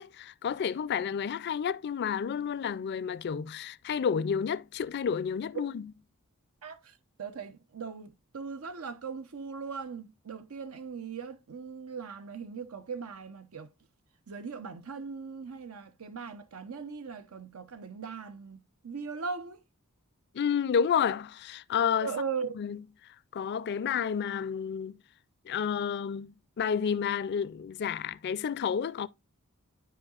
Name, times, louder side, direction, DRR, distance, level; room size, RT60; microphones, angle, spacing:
voice 1, 0.0-5.9 20.3-22.2 22.5-22.8 23.3-25.0 25.5-29.1, left 7 dB, 50° left, 0.4 m, -30 dB
voice 2, 6.6-13.7 14.3-19.6 22.0-22.5, right 5 dB, 85° right, 0.7 m, -39 dB
12.5 x 4.7 x 2.4 m
head